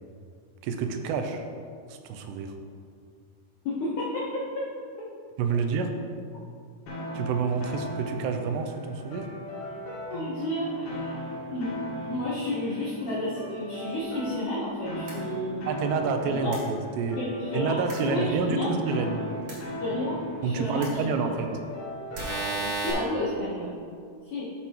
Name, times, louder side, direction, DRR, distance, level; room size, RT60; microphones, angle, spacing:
voice 1, 0.6-1.5 1.9-2.5 5.4-5.9 7.1-9.3 15.7-17.2 17.5-19.2 20.4-21.5, right 5 dB, 90° right, 5 dB, 2.8 m, -28 dB
voice 2, 3.7-4.2 10.1-11.2 11.5-15.7 16.2-16.5 17.2-18.8 19.8-21.0 22.6-23.8 24.3-24.4, left 1 dB, 70° left, -6 dB, 2.0 m, -31 dB
sound 1, 6.9-22.8, equal, 90° left, 4.0 m, -38 dB
sound 2, 15.1-15.2 16.5-16.6 17.9-18.0 19.5-19.6 20.8-20.9 22.1-22.9, right 2 dB, 45° right, 2.6 m, -31 dB
12.5 x 6.2 x 2.9 m, 2.2 s
omnidirectional pair, 4.8 m